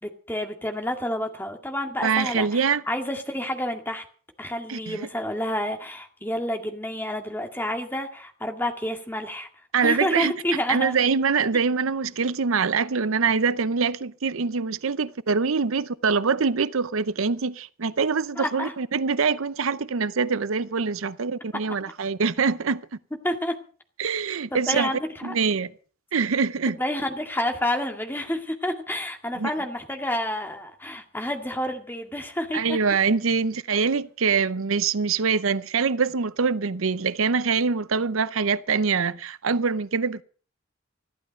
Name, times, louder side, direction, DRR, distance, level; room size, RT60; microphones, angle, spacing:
voice 1, 0.0-4.0 4.4-9.5 9.8-11.0 18.4-18.7 23.2-23.5 24.5-25.3 26.7-32.8, left 1 dB, 10° left, 2.1 m, -29 dB
voice 2, 2.0-2.8 4.7-5.0 9.7-10.3 10.7-22.8 24.0-24.9 25.2-25.7 26.1-26.8 29.4-29.5 32.5-40.2, right 5 dB, 80° right, 0.7 m, -24 dB
15.0 x 12.0 x 6.3 m
head